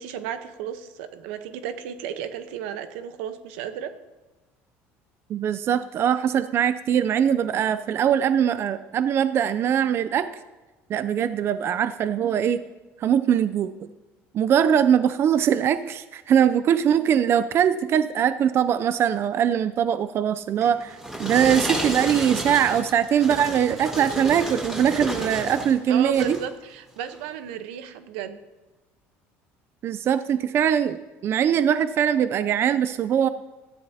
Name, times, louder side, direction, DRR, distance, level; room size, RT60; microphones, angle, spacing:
voice 1, 0.0-3.9 25.9-28.4, right 8 dB, 90° right, 9 dB, 1.0 m, -34 dB
voice 2, 5.3-10.4 10.9-12.6 13.0-13.9 14.3-26.4 29.8-33.3, right 9 dB, 45° right, 12 dB, 0.5 m, -22 dB
sound 1, 20.6-25.7 26.1-26.5 27.1-27.2, right 1 dB, 10° right, 4.8 m, -31 dB
17.0 x 13.5 x 2.8 m, 1.2 s
supercardioid pair, 110°, 6 cm